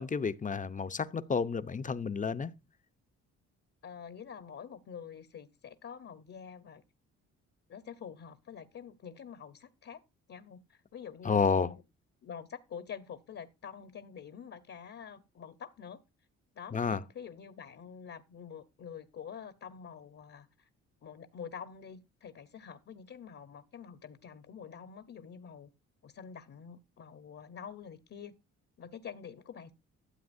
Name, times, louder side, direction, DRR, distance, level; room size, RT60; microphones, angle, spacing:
voice 1, 0.0-2.5 11.2-11.7 16.7-17.0, left 5 dB, 25° left, 0.7 m, -30 dB
voice 2, 3.8-6.8 7.7-10.0 10.3-11.8 12.2-16.0 16.5-20.7 21.0-25.7 26.0-28.3 28.8-29.7, left 7 dB, 50° left, 1.0 m, -47 dB
13.0 x 7.7 x 2.6 m
cardioid pair, 90°, 30 cm